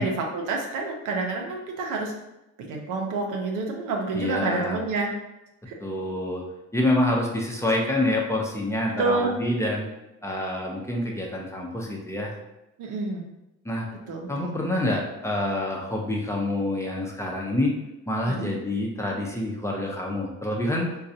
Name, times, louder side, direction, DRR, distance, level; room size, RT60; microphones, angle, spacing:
voice 1, 0.0-2.1 2.7-5.1 5.7-5.8 9.0-9.4 12.8-13.2 14.1-14.5 18.3-18.5, right 3 dB, 90° right, 0 dB, 0.7 m, -28 dB
voice 2, 4.1-4.8 5.8-6.4 6.7-9.9 10.2-12.3 13.6-13.9 14.3-17.7 18.1-20.9, left 1 dB, 10° left, -1 dB, 0.6 m, -27 dB
3.8 x 2.3 x 2.7 m, 0.91 s
cardioid pair, 90°, 30 cm